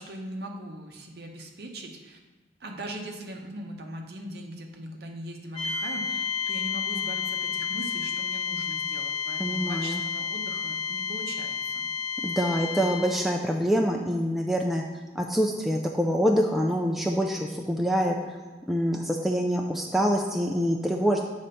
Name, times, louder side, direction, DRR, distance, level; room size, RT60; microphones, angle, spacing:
voice 1, 0.0-2.2 2.6-11.9, right 1 dB, 55° right, 2 dB, 0.8 m, -40 dB
sound 1, 5.5-13.3, left 6 dB, 35° left, 0.7 m, -31 dB
voice 2, 9.4-10.0 12.2-14.8 15.1-18.4 18.7-21.2, equal, ahead, 0 dB, 0.3 m, -25 dB
7.3 x 3.3 x 5.2 m, 1.3 s
head